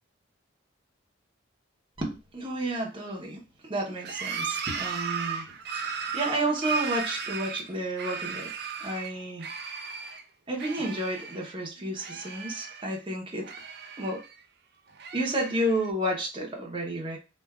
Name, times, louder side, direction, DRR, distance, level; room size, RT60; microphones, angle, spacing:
voice 1, 2.0-5.5 6.1-9.5 10.5-13.5 14.0-14.2 15.1-17.2, right 1 dB, 25° right, -1 dB, 0.8 m, -31 dB
sound 1, 4.0-9.1 9.4-10.2 10.6-11.5 11.8-13.0 13.4-14.4 14.9-15.9, right 6 dB, 55° right, 0.4 m, -36 dB
3.4 x 2.4 x 2.3 m, 0.29 s
head